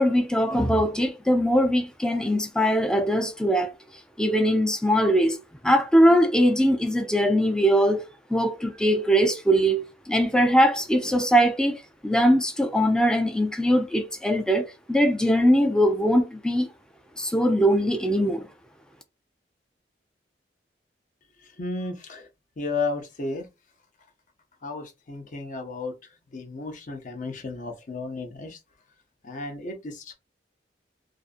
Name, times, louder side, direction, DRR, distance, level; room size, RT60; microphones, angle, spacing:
voice 1, 0.0-3.7 4.2-5.4 5.6-16.7 17.2-18.5, equal, 5° left, 0.3 m, -21 dB
voice 2, 21.4-22.3 22.6-23.5 24.6-26.0 26.3-28.6 29.2-30.1, left 3 dB, 45° left, 0.6 m, -33 dB
2.5 x 2.5 x 2.4 m
head